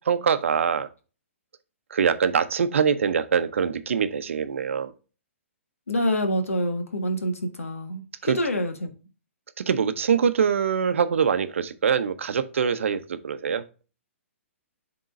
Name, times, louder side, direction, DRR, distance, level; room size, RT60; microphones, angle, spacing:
voice 1, 0.0-0.9 1.9-4.9 8.2-8.4 9.6-13.6, right 7 dB, 70° right, 11 dB, 0.7 m, -24 dB
voice 2, 5.9-8.9, equal, 85° left, 5 dB, 1.5 m, -26 dB
11.0 x 3.8 x 2.5 m, 0.34 s
hypercardioid pair, 130°, 7 cm